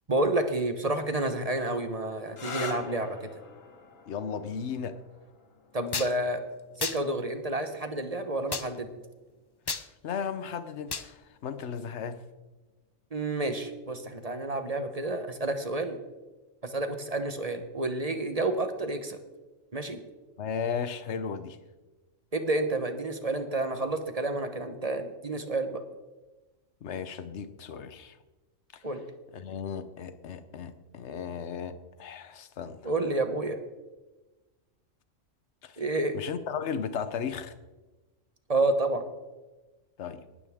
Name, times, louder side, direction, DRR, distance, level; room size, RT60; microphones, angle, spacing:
voice 1, 0.1-3.3 5.7-6.4 6.8-8.9 13.1-16.0 16.6-19.2 19.7-20.0 22.3-25.8 28.8-29.0 32.8-33.6 35.8-36.1 38.5-39.0, right 2 dB, 30° right, 7 dB, 1.1 m, -29 dB
sound 1, 2.3-9.7 10.7-11.2 14.8-15.1, left 4 dB, 80° left, 1.7 m, -45 dB
voice 2, 4.1-5.0 10.0-12.2 20.4-21.6 26.8-28.2 28.7-28.8 29.3-32.9 35.6-35.8 36.1-37.5 40.0-40.2, left 6 dB, 60° left, 12 dB, 1.1 m, -35 dB
sound 2, 5.9-6.1 6.8-7.0 8.5-8.7 9.7-9.8 10.9-11.1, left 4 dB, 35° left, 0.3 m, -32 dB
18.5 x 13.0 x 3.7 m, 1.2 s
omnidirectional pair, 1.3 m